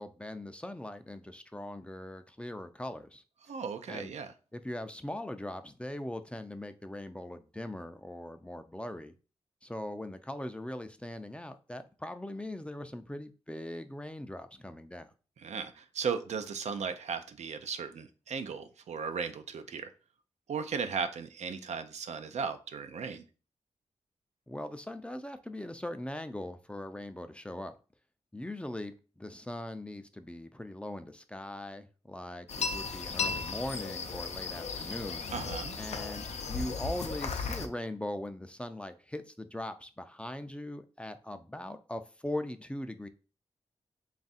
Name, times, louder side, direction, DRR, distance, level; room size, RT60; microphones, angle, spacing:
voice 1, 0.0-3.2 3.9-4.1 4.5-9.1 9.6-15.1 24.5-27.8 28.3-35.3 35.8-43.1, left 1 dB, 10° left, 0.4 m, -40 dB
voice 2, 3.5-4.3 15.4-19.9 20.5-23.2 35.3-35.8, right 6 dB, 80° right, 0.4 m, -36 dB
sound 1, 32.5-37.7, left 5 dB, 75° left, 0.5 m, -36 dB
3.4 x 2.4 x 4.0 m
cardioid pair, 70°, 11 cm